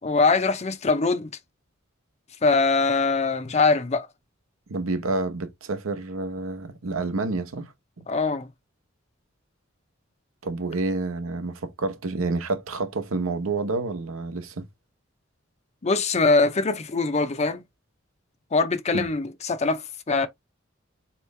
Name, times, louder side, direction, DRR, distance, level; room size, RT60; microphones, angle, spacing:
voice 1, 0.0-1.3 2.4-4.1 8.1-8.5 15.8-17.6 18.5-20.3, left 3 dB, 35° left, 0.6 m, -22 dB
voice 2, 4.7-8.0 10.4-14.7 18.9-19.1, right 3 dB, 80° right, 0.9 m, -29 dB
4.1 x 3.1 x 3.2 m
head